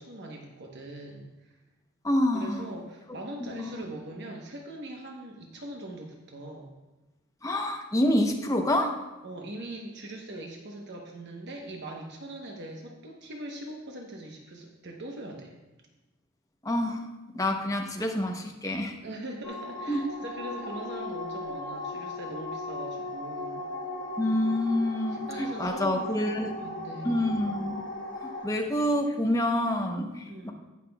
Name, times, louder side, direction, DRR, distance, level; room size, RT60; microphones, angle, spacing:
voice 1, 0.0-1.6 2.3-6.7 9.2-15.5 19.0-23.6 25.1-27.2 28.3-28.4 30.3-30.5, right 1 dB, 55° right, 0 dB, 1.0 m, -41 dB
voice 2, 2.0-2.7 3.4-3.8 7.4-9.0 16.6-17.1 17.3-18.9 19.9-20.0 24.2-26.5 27.0-27.8 28.2-30.5, left 1 dB, 15° left, 3 dB, 0.8 m, -27 dB
sound 1, 19.4-28.5, left 2 dB, 90° left, 1.8 m, -37 dB
17.5 x 5.9 x 2.3 m, 1.1 s
head